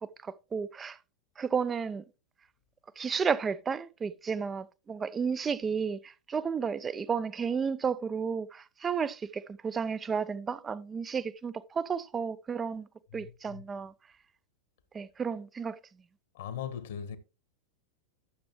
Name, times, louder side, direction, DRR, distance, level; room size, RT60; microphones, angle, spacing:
voice 1, 0.2-1.0 1.4-2.0 3.0-12.9 13.1-13.9 14.9-15.8, right 6 dB, 20° right, 0.6 m, -32 dB
voice 2, 13.1-13.6 16.3-17.2, left 8 dB, 55° left, 1.5 m, -39 dB
12.0 x 7.0 x 3.2 m
figure-of-eight pair, 90°, 0 cm